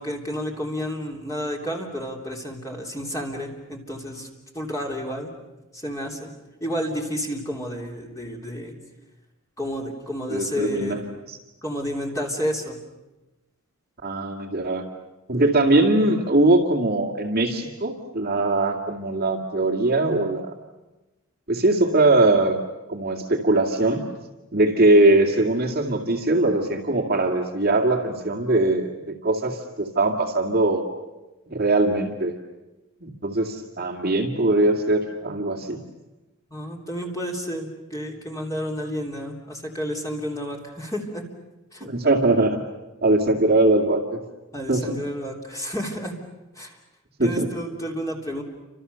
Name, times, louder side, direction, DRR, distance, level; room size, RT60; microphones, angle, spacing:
voice 1, 0.0-4.3 4.5-5.3 5.7-6.3 6.6-8.7 9.6-11.0 11.6-12.8 36.5-41.2 41.7-41.9 44.5-46.1 46.5-46.8 47.2-48.4, equal, 15° left, 0 dB, 3.4 m, -30 dB
voice 2, 10.3-11.0 14.0-14.8 15.3-20.5 21.5-22.6 22.9-24.1 24.5-30.8 31.5-32.4 33.0-35.8 41.8-42.6 43.0-44.2 44.7-45.0 47.2-47.5, right 2 dB, 45° right, 2 dB, 2.2 m, -21 dB
29.5 x 26.0 x 7.0 m, 1.1 s
head